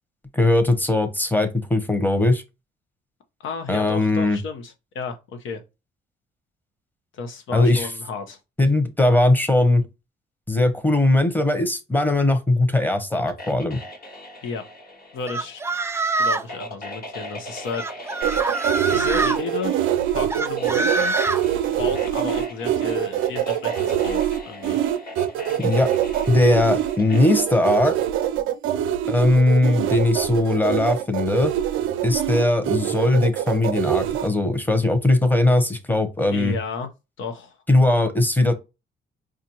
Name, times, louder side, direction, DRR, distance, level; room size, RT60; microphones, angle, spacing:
voice 1, 0.3-2.4 3.7-4.4 7.5-7.9 8.6-9.8 10.5-13.8 25.6-25.9 26.3-27.9 29.1-31.5 32.0-36.5 37.7-38.5, left 2 dB, 10° left, 0.9 m, -19 dB
voice 2, 3.4-5.6 7.1-8.4 14.4-14.6 15.1-15.6 16.2-18.3 18.9-19.7 20.1-21.1 21.8-24.8 36.3-36.9 37.2-37.6, left 5 dB, 80° left, 1.0 m, -32 dB
sound 1, 13.3-27.2, left 1 dB, 50° left, 1.4 m, -40 dB
sound 2, 15.3-16.5 17.7-19.4 20.3-21.4, right 3 dB, 15° right, 0.4 m, -24 dB
sound 3, 18.2-34.3, right 11 dB, 85° right, 0.5 m, -24 dB
4.9 x 2.5 x 2.9 m
cardioid pair, 90°, 20 cm